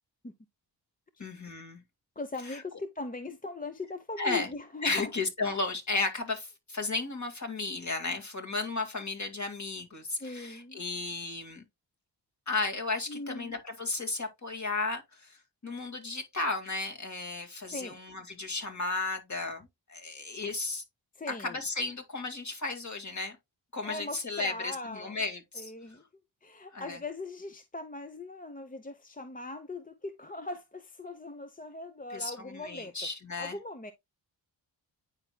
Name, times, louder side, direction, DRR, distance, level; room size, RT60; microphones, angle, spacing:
voice 1, 1.2-1.8 2.5-2.6 4.2-4.5 4.8-11.6 12.5-20.8 21.4-23.4 23.7-25.7 26.7-27.0 32.1-33.6, left 3 dB, 40° left, 2.1 m, -34 dB
voice 2, 2.2-5.1 10.2-10.8 13.1-13.6 17.7-18.0 20.2-20.3 21.1-21.6 23.8-25.2 25.5-26.0 26.4-32.9 33.4-33.9, left 3 dB, 20° left, 0.8 m, -40 dB
9.5 x 4.5 x 2.2 m
cardioid pair, 50°, 46 cm